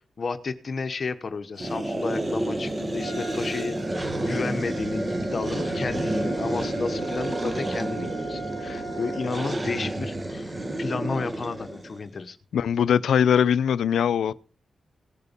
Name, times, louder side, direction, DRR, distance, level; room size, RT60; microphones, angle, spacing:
voice 1, 0.2-12.4, left 4 dB, 45° left, 1.0 m, -32 dB
sound 1, 1.6-12.0, right 1 dB, 25° right, 1.5 m, -30 dB
Trumpet, 3.0-9.5, right 3 dB, 85° right, 7.2 m, -41 dB
voice 2, 12.5-14.3, left 8 dB, 90° left, 0.5 m, -21 dB
18.0 x 6.7 x 5.2 m
cardioid pair, 95°, 0 cm